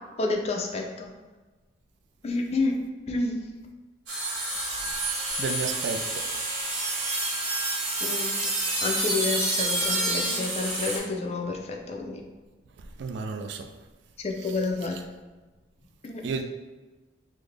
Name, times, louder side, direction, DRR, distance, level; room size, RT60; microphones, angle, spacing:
voice 1, 0.2-1.1 2.2-3.4 8.0-8.6 8.8-12.2 14.2-15.0 16.0-16.3, left 3 dB, 30° left, 2 dB, 0.4 m, -29 dB
sound 1, 4.1-11.0, right 2 dB, 90° right, 1.2 m, -28 dB
voice 2, 5.4-6.3 12.8-13.7 14.4-14.6 16.2-16.4, right 4 dB, 60° right, 6 dB, 0.3 m, -33 dB
3.8 x 2.0 x 3.2 m, 1.2 s
head